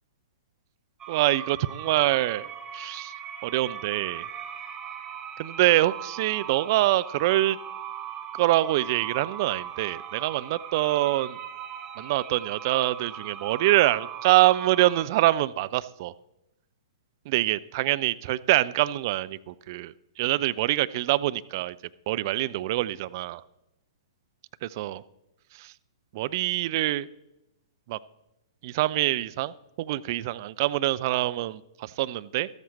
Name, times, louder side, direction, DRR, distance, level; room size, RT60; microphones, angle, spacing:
sound 1, 1.0-15.0, right 9 dB, 20° right, 1.2 m, -39 dB
voice 1, 1.1-2.5 2.7-3.1 3.4-4.3 5.4-7.6 8.4-11.4 12.0-16.1 17.3-21.8 22.1-23.4 24.6-25.0 25.6-25.7 26.1-27.1 27.9-28.0 28.6-32.5, right 16 dB, 40° right, 15 dB, 0.5 m, -25 dB
13.5 x 13.5 x 4.2 m, 0.90 s
figure-of-eight pair, 110°, 3 cm